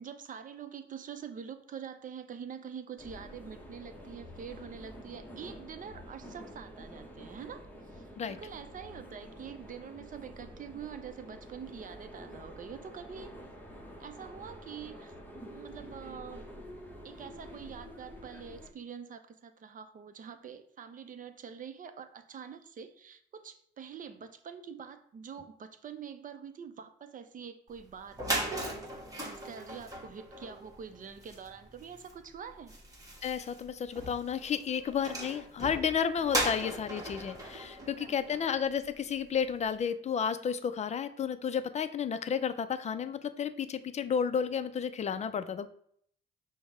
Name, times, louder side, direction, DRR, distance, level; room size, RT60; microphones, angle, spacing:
voice 1, 0.0-7.6 7.9-13.3 14.0-15.1 15.5-16.5 17.0-28.7 29.2-32.8 37.7-38.4, right 7 dB, 45° right, 9 dB, 0.5 m, -45 dB
sound 1, 3.0-18.7, equal, 10° left, 0.8 m, -48 dB
sound 2, 27.8-27.9 28.1-38.9, right 1 dB, 15° right, 1.2 m, -38 dB
voice 2, 33.2-45.7, left 7 dB, 35° left, 12 dB, 0.4 m, -32 dB
5.2 x 2.1 x 4.8 m, 0.64 s
cardioid pair, 90°, 20 cm